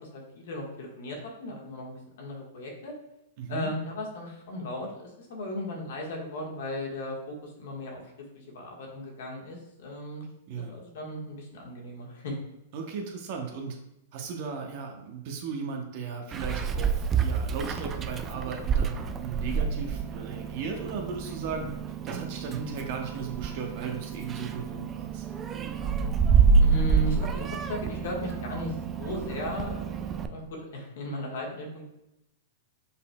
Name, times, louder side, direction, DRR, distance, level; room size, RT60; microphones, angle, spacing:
voice 1, 0.0-2.9 3.5-8.0 8.3-10.2 10.6-12.3 26.6-31.8, left 1 dB, 65° left, 0 dB, 1.4 m, -36 dB
voice 2, 3.4-3.7 10.5-10.7 12.7-13.8 14.1-25.3, right 5 dB, 55° right, 2 dB, 0.7 m, -36 dB
Meow, 16.3-30.3, right 5 dB, 25° right, 0.3 m, -28 dB
5.4 x 4.1 x 2.2 m, 0.85 s
hypercardioid pair, 125°, 0 cm